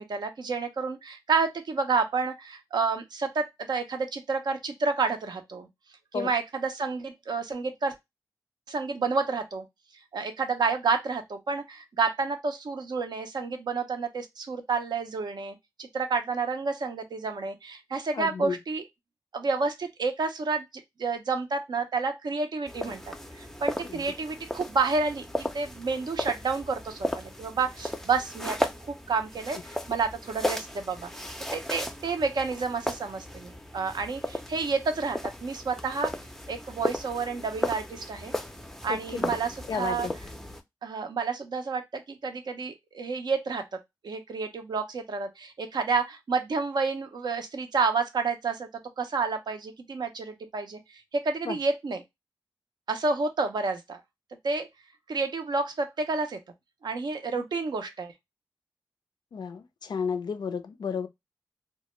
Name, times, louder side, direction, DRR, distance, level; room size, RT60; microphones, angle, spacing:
voice 1, 0.0-5.7 6.1-7.9 8.7-9.6 10.1-18.8 19.3-20.7 21.0-23.0 23.4-25.2 25.5-28.6 28.9-29.6 29.9-31.1 31.5-36.1 36.5-38.3 38.8-40.1 40.8-43.6 44.0-48.7 49.0-50.8 51.1-52.0 52.9-54.0 54.4-54.7 55.1-56.4 56.8-58.1, right 4 dB, 65° right, 0.5 m, -29 dB
voice 2, 18.1-18.6 23.9-24.0 38.9-39.3 39.7-40.1 51.5-51.6 59.3-61.1, left 6 dB, 65° left, 0.4 m, -32 dB
sound 1, 22.7-40.6, left 1 dB, 5° left, 0.4 m, -35 dB
2.1 x 2.0 x 3.0 m
cardioid pair, 45°, 8 cm